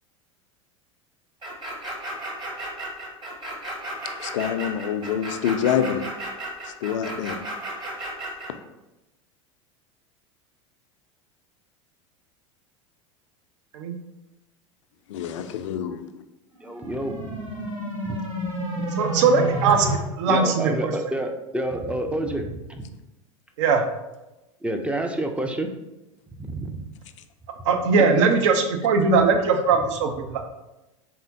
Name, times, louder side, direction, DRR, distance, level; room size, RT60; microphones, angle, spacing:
sound 1, 1.4-8.5, right 1 dB, 25° right, 1.0 m, -34 dB
voice 1, 4.2-6.0 6.8-7.4 15.1-16.0, left 9 dB, 65° left, 9 dB, 0.4 m, -26 dB
voice 2, 16.6-17.4 18.0-18.2 18.8-18.9 20.3-22.8 24.6-25.7 26.4-26.8, right 1 dB, 5° right, 4 dB, 0.4 m, -28 dB
sound 2, 16.6-20.0, right 1 dB, 85° right, 1.1 m, -29 dB
voice 3, 19.0-19.9 20.2-20.9 23.6-23.8 27.6-30.4, right 4 dB, 65° right, 5 dB, 0.6 m, -20 dB
4.2 x 3.6 x 2.7 m, 0.99 s
figure-of-eight pair, 80°, 17 cm